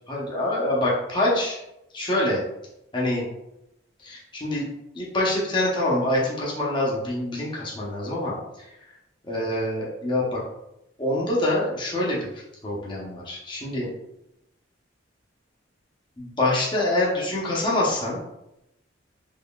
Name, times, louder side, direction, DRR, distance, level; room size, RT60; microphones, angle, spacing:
voice 1, 0.1-1.6 1.9-2.4 2.9-3.3 4.0-4.7 4.9-8.7 9.3-10.4 11.0-12.3 12.6-13.9 16.2-18.2, left 1 dB, 25° left, -5 dB, 0.7 m, -25 dB
3.7 x 3.2 x 2.3 m, 0.87 s
head